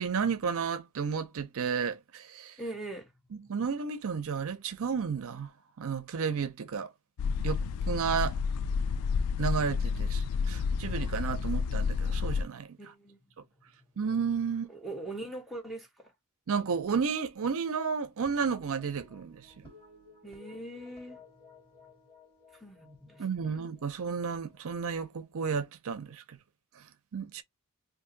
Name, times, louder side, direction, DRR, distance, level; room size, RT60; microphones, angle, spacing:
voice 1, 0.0-2.6 3.5-5.5 5.8-6.9 7.4-7.6 7.9-8.3 9.4-12.7 14.0-14.7 16.5-19.4 23.2-26.4 27.1-27.4, right 6 dB, 65° right, 0.5 m, -32 dB
voice 2, 2.6-3.1 12.8-13.2 14.7-16.1 20.2-21.2 22.6-23.2, right 2 dB, ahead, 0.9 m, -41 dB
sound 1, 7.2-12.4, left 5 dB, 75° left, 0.3 m, -30 dB
sound 2, 18.3-24.8, left 3 dB, 20° left, 2.2 m, -57 dB
2.7 x 2.6 x 3.8 m
head